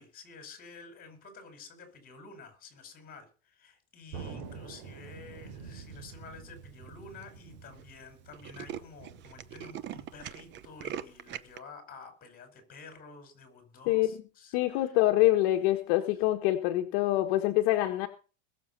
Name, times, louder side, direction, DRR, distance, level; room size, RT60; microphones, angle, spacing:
voice 1, 0.0-14.9, left 4 dB, 25° left, 5.3 m, -50 dB
Thunder, 4.1-11.0, right 5 dB, 55° right, 3.9 m, -47 dB
Tools, 5.5-5.9 6.6-6.7 6.9-7.0 7.2-7.4 7.7-7.8 8.1-11.6, right 10 dB, 35° right, 0.8 m, -41 dB
voice 2, 14.5-18.1, left 15 dB, 60° left, 1.5 m, -25 dB
21.0 x 7.3 x 5.5 m
supercardioid pair, 145°, 33 cm